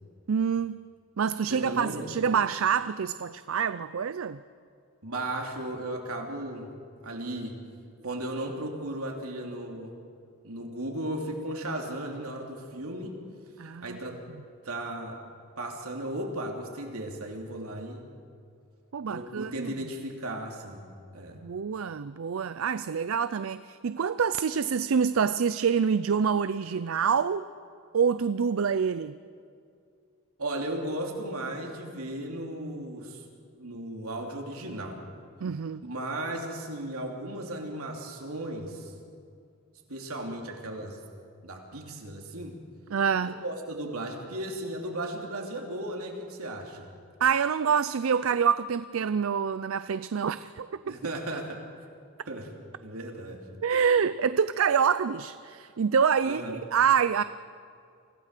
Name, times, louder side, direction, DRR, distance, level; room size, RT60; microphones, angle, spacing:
voice 1, 0.3-0.8 1.2-4.4 13.6-14.0 18.9-19.7 21.4-27.4 27.9-29.2 35.4-35.8 42.9-43.4 47.2-51.0 53.6-57.2, right 6 dB, 65° right, 14 dB, 0.4 m, -26 dB
voice 2, 1.5-2.3 5.0-6.7 7.0-7.6 8.0-10.0 10.4-13.2 13.8-14.2 14.6-15.2 15.6-18.1 19.1-20.9 21.1-21.4 30.4-33.2 33.5-35.0 35.8-38.9 39.9-41.0 41.4-42.5 43.2-46.9 50.8-51.6 52.3-52.5 52.8-53.4 56.3-56.5, right 1 dB, 80° right, 1 dB, 3.0 m, -35 dB
25.0 x 16.0 x 6.7 m, 2.4 s
head